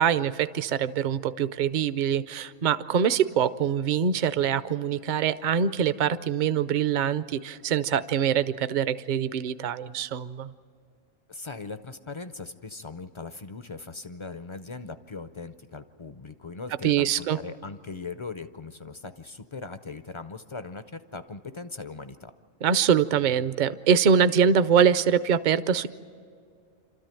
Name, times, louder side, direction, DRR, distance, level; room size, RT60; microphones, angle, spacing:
voice 1, 0.0-10.5 16.8-17.4 22.6-25.9, right 8 dB, 50° right, 14 dB, 0.6 m, -24 dB
voice 2, 11.3-22.3, left 4 dB, 45° left, 11 dB, 0.3 m, -39 dB
27.5 x 13.5 x 9.0 m, 2.3 s
omnidirectional pair, 1.3 m